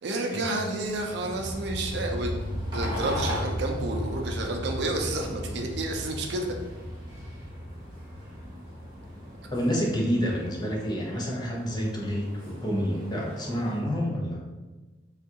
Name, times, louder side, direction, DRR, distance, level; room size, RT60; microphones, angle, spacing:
voice 1, 0.0-6.6, right 2 dB, 60° right, 2 dB, 0.4 m, -30 dB
sound 1, 0.6-13.8, equal, 25° right, 0.9 m, -42 dB
sound 2, 0.8-12.4, equal, 40° left, 1.2 m, -36 dB
voice 2, 9.5-14.4, equal, 20° left, -2 dB, 0.4 m, -28 dB
3.4 x 2.3 x 2.7 m, 1.2 s
head